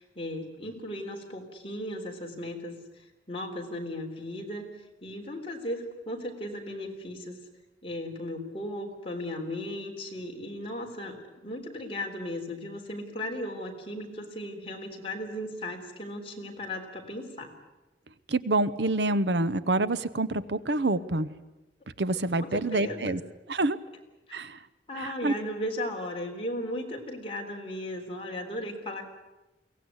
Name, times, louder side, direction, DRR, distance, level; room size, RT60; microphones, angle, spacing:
voice 1, 0.0-4.7 5.0-7.4 7.8-17.5 22.4-23.1 24.9-29.0, left 1 dB, 30° left, 1 dB, 3.7 m, -36 dB
voice 2, 18.3-21.3 22.0-23.2 23.5-23.8 24.3-24.6 25.0-25.3, right 2 dB, 70° right, 14 dB, 0.9 m, -27 dB
23.0 x 18.0 x 9.7 m, 1.0 s
head